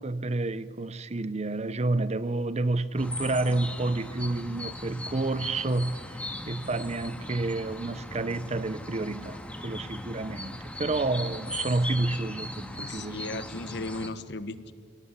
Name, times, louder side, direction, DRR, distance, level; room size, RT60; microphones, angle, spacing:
voice 1, 0.0-6.0 6.5-13.5, right 2 dB, 35° right, 0.7 m, -29 dB
sound 1, 3.0-14.1, left 1 dB, 5° left, 1.8 m, -39 dB
voice 2, 12.8-14.7, left 2 dB, 60° left, 1.4 m, -36 dB
28.0 x 18.0 x 9.7 m
head